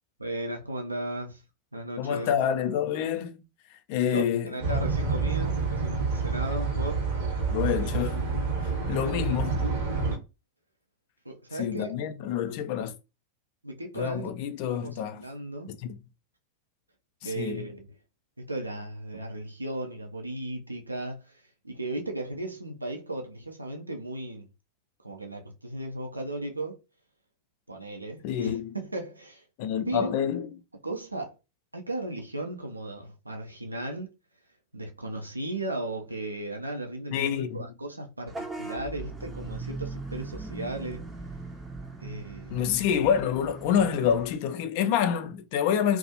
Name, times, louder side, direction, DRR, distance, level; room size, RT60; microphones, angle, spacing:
voice 1, 0.2-1.4 1.7-2.3 4.1-7.0 11.3-12.0 13.6-14.3 14.8-15.7 17.2-17.9 18.4-21.3 21.6-24.5 25.0-26.8 27.7-29.4 29.9-30.1 30.8-31.4 31.7-34.1 34.7-41.0 42.0-42.6, right 2 dB, 85° right, 0.4 m, -36 dB
voice 2, 2.0-3.4 3.7-4.5 7.5-9.7 11.5-12.9 13.9-15.2 15.7-16.0 17.2-17.7 28.2-28.8 29.6-30.5 37.1-37.7 42.5-46.0, left 8 dB, 45° left, 0.3 m, -28 dB
sound 1, 4.6-10.2, right 4 dB, 55° right, 0.8 m, -28 dB
Vehicle horn car horn honking / Bus, 38.3-44.4, right 3 dB, 10° right, 0.5 m, -39 dB
2.3 x 2.0 x 2.7 m
figure-of-eight pair, 90°, 0 cm